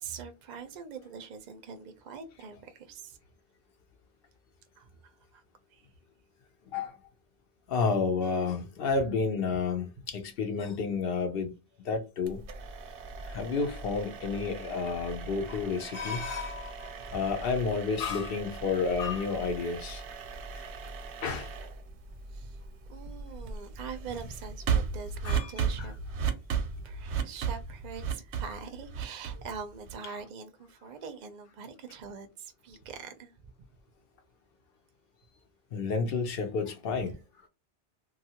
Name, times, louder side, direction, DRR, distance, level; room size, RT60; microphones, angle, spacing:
voice 1, 0.0-3.2 4.8-5.4 5.7-5.8 9.0-9.1 9.5-9.6 17.1-17.2 22.3-22.6 22.9-26.0 26.8-33.3, right 6 dB, 55° right, 0.5 m, -43 dB
voice 2, 7.7-11.5 11.8-12.4 13.3-20.0 20.5-20.6 21.2-21.5 25.2-25.9 35.7-37.1, left 4 dB, 65° left, 0.7 m, -31 dB
sound 1, 12.3-30.2, right 6 dB, 85° right, 0.9 m, -36 dB
2.6 x 2.3 x 2.8 m
omnidirectional pair, 1.1 m